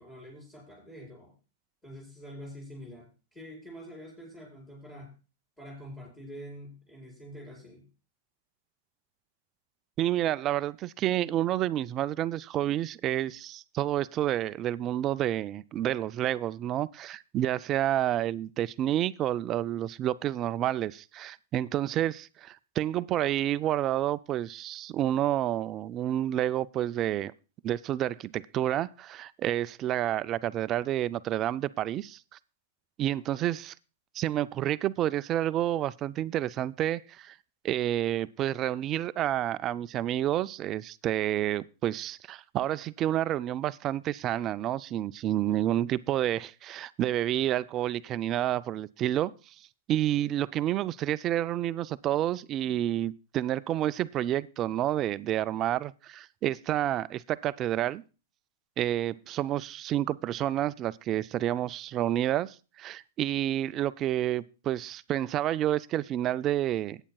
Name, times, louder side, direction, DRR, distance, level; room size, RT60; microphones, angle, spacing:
voice 1, 0.0-1.4 1.8-5.1 5.6-7.9, equal, 10° left, 5.2 m, -46 dB
voice 2, 10.0-27.3 27.6-32.2 33.0-33.7 34.1-37.4 37.6-49.3 49.9-58.0 58.8-67.0, right 12 dB, 30° right, 0.4 m, -29 dB
18.0 x 8.9 x 2.3 m
hypercardioid pair, 130°, 0 cm